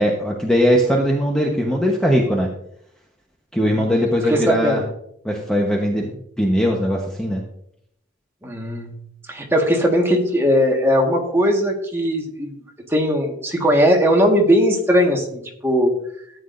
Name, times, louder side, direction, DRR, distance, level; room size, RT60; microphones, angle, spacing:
voice 1, 0.0-2.5 3.5-4.8 5.2-6.1 6.4-7.4, equal, 5° left, -1 dB, 1.0 m, -19 dB
voice 2, 3.7-4.0 4.3-4.8 8.4-8.9 9.3-12.5 12.9-15.9, equal, 10° right, 0 dB, 1.6 m, -19 dB
13.5 x 8.9 x 2.6 m, 0.73 s
head